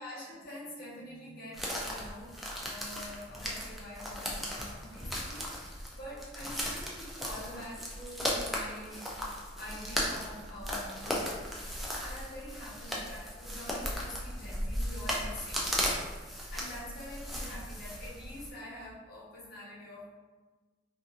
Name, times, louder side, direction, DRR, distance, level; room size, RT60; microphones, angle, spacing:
voice 1, 0.0-2.3 2.6-9.1 9.5-11.5 12.0-16.0 16.5-20.1, left 1 dB, 55° left, -6 dB, 0.9 m, -46 dB
sound 1, 1.5-18.5, equal, ahead, 0.3 m, -36 dB
2.4 x 2.3 x 2.7 m, 1.3 s
head